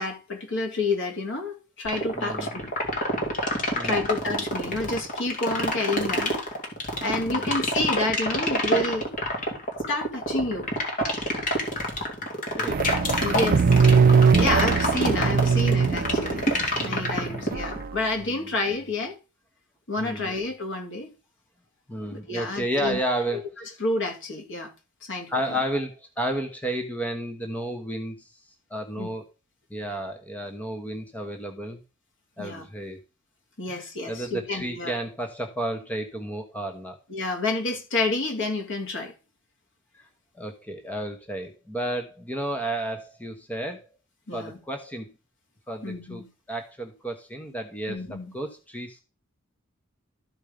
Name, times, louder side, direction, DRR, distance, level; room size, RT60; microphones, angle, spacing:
voice 1, 0.0-2.7 3.8-6.4 7.0-9.1 9.9-10.7 13.2-13.6 14.4-16.5 16.8-19.2 19.9-21.1 22.1-23.0 23.3-23.4 23.8-24.7 25.0-25.6 29.0-29.1 32.4-32.6 33.6-34.9 37.1-39.1 44.3-44.6 45.8-46.3 47.9-48.3, left 2 dB, 60° left, 2.5 m, -29 dB
sound 1, 1.8-17.8, equal, 40° left, 2.6 m, -26 dB
voice 2, 2.1-2.5 3.7-4.4 7.3-7.5 12.0-12.1 12.5-12.8 16.7-17.7 18.2-18.5 20.0-20.3 21.9-23.5 25.3-28.3 28.7-29.2 29.7-31.8 32.4-33.0 33.7-37.0 39.9-40.0 40.3-43.9 44.3-45.1 45.7-49.0, right 1 dB, 5° left, 1.1 m, -32 dB
sound 2, 12.7-17.6, right 5 dB, 45° right, 0.5 m, -21 dB
13.0 x 4.5 x 5.1 m
head